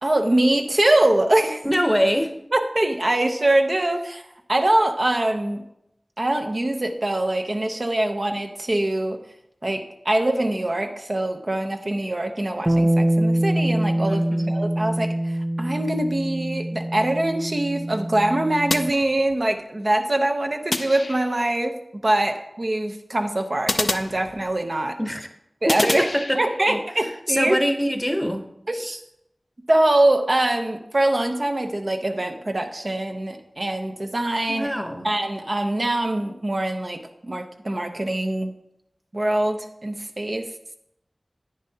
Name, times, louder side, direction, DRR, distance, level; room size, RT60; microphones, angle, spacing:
voice 1, 0.0-1.6 2.5-5.6 6.2-9.2 9.6-21.8 22.0-25.0 25.6-26.1 26.3-27.6 28.7-29.0 29.7-34.7 35.0-38.5 39.1-40.8, right 1 dB, 50° right, 4 dB, 0.8 m, -23 dB
voice 2, 1.6-2.3 14.1-14.5 25.0-25.3 25.7-26.4 26.7-26.8 27.3-28.4 34.5-35.1, equal, 5° left, 6 dB, 0.9 m, -24 dB
Bass guitar, 12.7-18.9, right 1 dB, 20° right, 0.3 m, -24 dB
sound 1, 18.7-19.6 20.7-21.6 23.7-24.8 25.7-26.8, left 2 dB, 65° left, 0.4 m, -29 dB
10.0 x 9.2 x 2.8 m, 0.82 s
wide cardioid pair, 50°, 0 cm